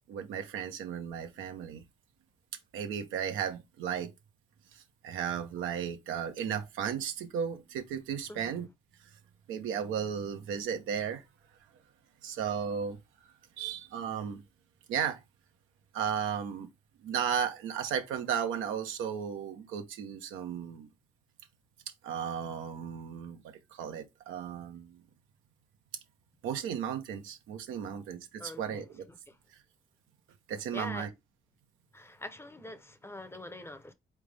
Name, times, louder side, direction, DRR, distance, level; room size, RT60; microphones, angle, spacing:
voice 1, 0.1-1.8 2.7-4.1 4.7-8.7 9.5-11.2 12.2-13.0 13.6-14.4 14.9-15.2 15.9-16.7 17.0-20.9 22.0-25.0 26.4-29.0 30.5-31.1, right 8 dB, 90° right, 0.9 m, -35 dB
voice 2, 28.4-29.4 30.7-31.1 31.9-33.9, left 1 dB, 10° left, 0.7 m, -44 dB
3.9 x 3.3 x 3.3 m
cardioid pair, 90°, 20 cm